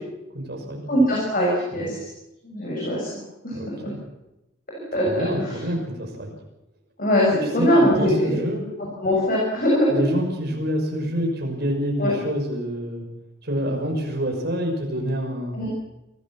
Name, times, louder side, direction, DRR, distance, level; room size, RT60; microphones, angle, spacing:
voice 1, 0.3-0.8 1.7-1.9 3.5-4.0 4.9-6.3 7.6-8.7 9.9-13.1 13.4-15.6, equal, 50° right, 2 dB, 6.1 m, -27 dB
voice 2, 0.9-1.9 2.4-3.1 3.4-3.6 4.9-5.5 7.0-8.4 9.0-10.0 12.0-12.1 15.5-15.7, equal, 45° left, -3 dB, 6.7 m, -21 dB
23.5 x 17.0 x 7.5 m, 0.93 s
head